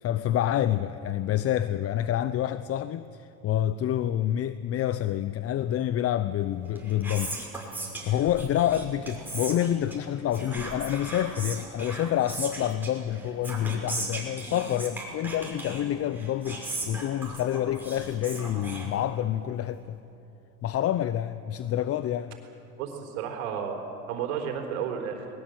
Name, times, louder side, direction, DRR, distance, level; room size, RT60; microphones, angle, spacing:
voice 1, 0.0-7.4 8.0-20.0 20.6-22.4, left 11 dB, 35° left, 0.7 m, -28 dB
Whispering, 6.6-19.4, right 2 dB, 5° right, 5.8 m, -38 dB
voice 2, 22.8-23.8 24.1-25.3, right 8 dB, 75° right, 4.1 m, -32 dB
21.0 x 20.5 x 7.9 m
supercardioid pair, 100°, 42 cm